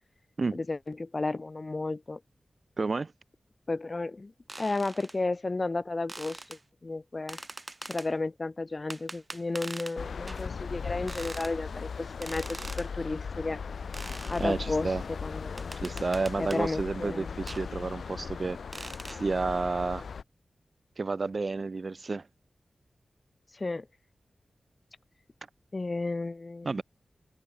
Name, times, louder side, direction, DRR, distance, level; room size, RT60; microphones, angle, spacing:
voice 1, 0.5-2.2 3.7-4.3 4.6-7.4 7.9-13.6 14.3-15.7 16.4-17.4 23.5-23.9 25.7-26.7, left 3 dB, 35° left, 5.4 m, -33 dB
voice 2, 2.8-3.1 14.4-15.0 15.8-18.6 19.1-20.1 21.0-22.3 26.6-26.8, right 3 dB, 50° right, 3.2 m, -30 dB
sound 1, 4.5-5.2 6.1-6.6 7.3-8.1 8.9-10.0 10.3-10.5 11.1-11.5 12.2-12.9 13.9-14.5 15.6-16.6 17.5-17.6 18.7-19.2, right 2 dB, 30° right, 7.4 m, -42 dB
sound 2, 10.0-20.2, left 5 dB, 85° left, 1.3 m, -38 dB
open air
wide cardioid pair, 80°, 0 cm